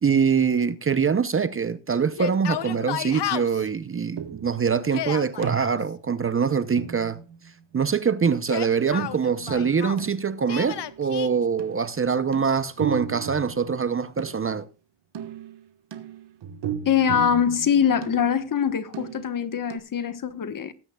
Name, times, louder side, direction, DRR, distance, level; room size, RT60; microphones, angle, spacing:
voice 1, 0.0-7.2 7.7-14.7, right 6 dB, 25° right, 0.7 m, -24 dB
Yell, 2.1-3.7 4.8-5.7 8.3-10.1 10.5-11.3, left 12 dB, 60° left, 1.0 m, -32 dB
sound 1, 4.2-4.6 5.4-6.1 6.8-7.8 9.0-11.1 11.6-11.9 12.3-14.5 15.1-18.6 18.9-19.4 19.7-19.8, right 8 dB, 60° right, 1.5 m, -36 dB
voice 2, 16.8-20.7, left 8 dB, 45° left, 1.3 m, -23 dB
19.0 x 9.0 x 2.3 m
cardioid pair, 90°, 47 cm